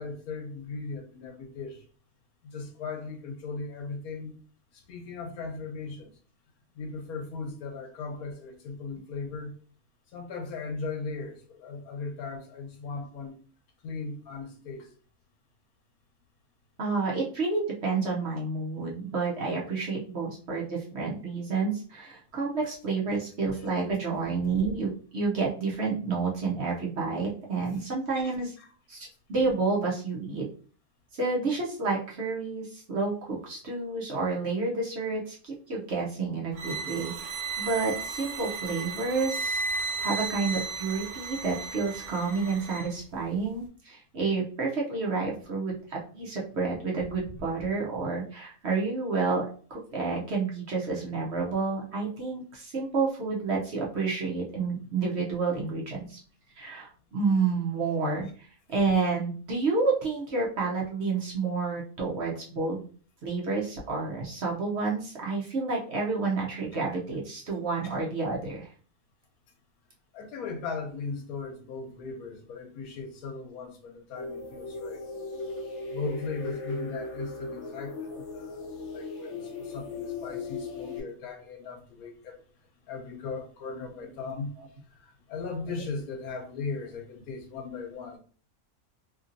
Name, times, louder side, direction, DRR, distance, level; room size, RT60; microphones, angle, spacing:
voice 1, 0.0-1.8 2.4-4.3 4.7-6.1 6.8-9.5 10.1-13.4 13.8-14.9 23.6-23.7 28.2-28.7 70.1-75.0 75.8-82.4 82.9-84.5 84.9-88.2, left 4 dB, 80° left, 1.2 m, -38 dB
voice 2, 16.8-28.5 28.9-30.5 31.1-56.2 56.5-62.9 63.2-68.7 83.6-83.7 84.1-84.2 84.6-84.7 85.7-85.8, right 4 dB, 55° right, 0.8 m, -30 dB
sound 1, 36.5-42.9, right 4 dB, 85° right, 1.1 m, -34 dB
sound 2, 74.1-81.0, left 3 dB, 60° left, 0.9 m, -37 dB
2.8 x 2.7 x 2.5 m
omnidirectional pair, 1.5 m